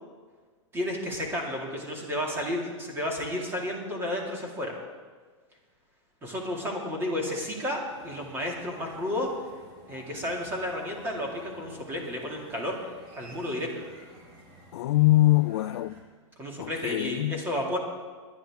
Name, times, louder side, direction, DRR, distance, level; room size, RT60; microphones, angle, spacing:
voice 1, 0.7-4.7 6.2-9.3 9.8-12.8 13.1-13.7 16.4-17.8, left 1 dB, 15° right, 2.4 m, -32 dB
sound 1, 7.9-16.0, right 1 dB, 35° right, 4.8 m, -51 dB
voice 2, 14.7-16.0 16.6-17.4, left 17 dB, 55° left, 0.4 m, -23 dB
21.0 x 10.5 x 3.7 m
hypercardioid pair, 150°, 17 cm